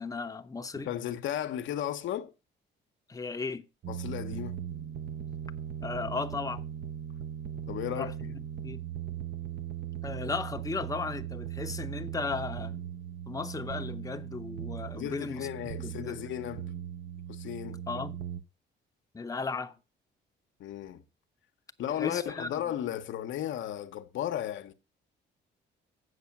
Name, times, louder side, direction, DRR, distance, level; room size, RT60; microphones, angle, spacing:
voice 1, 0.0-0.9 3.1-3.7 5.8-6.6 7.9-8.3 8.6-8.8 10.0-12.8 13.3-16.2 17.9-18.2 19.1-19.8 21.9-22.6, left 4 dB, 15° left, 0.7 m, -36 dB
voice 2, 0.7-2.3 3.9-4.6 7.7-8.3 14.9-16.7 17.3-17.8 20.6-21.0 21.8-24.7, left 11 dB, 75° left, 0.8 m, -35 dB
sound 1, 3.8-18.4, right 10 dB, 55° right, 0.8 m, -39 dB
8.0 x 6.1 x 5.8 m
cardioid pair, 90°, 20 cm